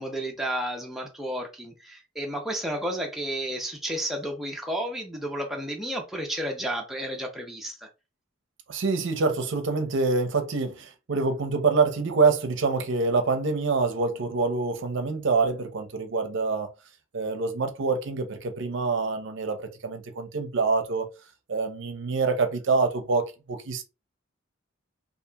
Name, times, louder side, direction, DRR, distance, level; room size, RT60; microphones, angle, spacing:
voice 1, 0.0-7.9, right 1 dB, ahead, 0.5 m, -32 dB
voice 2, 8.7-16.7 17.1-21.1 21.5-23.8, right 4 dB, 65° right, 0.5 m, -26 dB
2.8 x 2.4 x 2.2 m
head